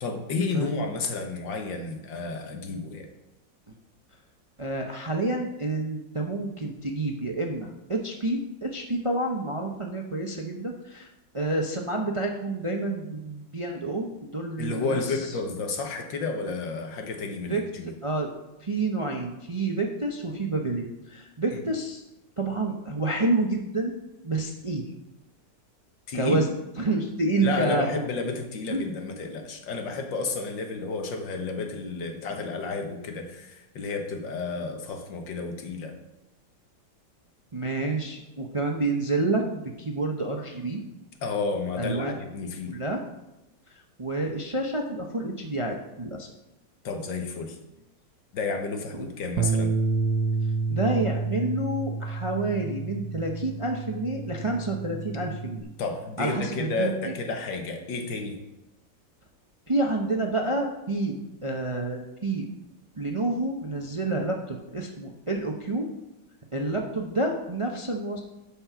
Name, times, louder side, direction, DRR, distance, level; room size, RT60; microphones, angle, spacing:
voice 1, 0.0-3.1 14.6-18.0 21.5-21.6 26.1-26.5 27.4-35.9 41.2-42.8 46.8-47.6 48.3-49.7 55.8-58.4, left 4 dB, 90° left, 4 dB, 2.0 m, -31 dB
voice 2, 4.6-11.1 11.3-14.1 14.3-15.0 17.5-17.6 18.0-18.3 18.6-22.0 22.4-24.8 26.1-26.5 26.8-27.9 28.7-28.9 37.5-40.8 41.8-42.1 42.7-43.0 44.0-46.3 49.0-49.1 50.7-55.7 56.2-56.9 59.7-62.4 63.0-65.9 66.5-68.2, right 2 dB, 35° right, 2 dB, 0.5 m, -28 dB
Bass guitar, 49.4-55.6, right 4 dB, 85° right, 1.4 m, -29 dB
11.5 x 5.4 x 5.8 m, 0.95 s
omnidirectional pair, 2.0 m